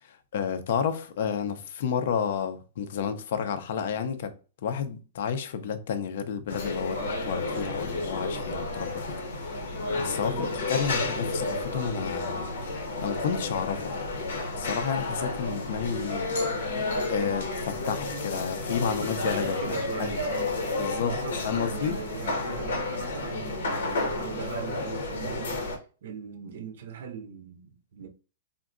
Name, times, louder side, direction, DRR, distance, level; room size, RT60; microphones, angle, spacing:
voice 1, 0.0-4.3 4.6-12.5 13.0-14.0 14.6-16.3 17.1-20.2 20.8-21.2 21.4-22.0, left 7 dB, 55° left, 0.4 m, -31 dB
sound 1, 6.5-25.8, left 2 dB, 70° left, 0.8 m, -31 dB
voice 2, 10.2-10.6 18.8-20.5 21.0-28.1, right 7 dB, 60° right, 0.4 m, -40 dB
3.6 x 2.2 x 2.4 m
hypercardioid pair, 165°, 0 cm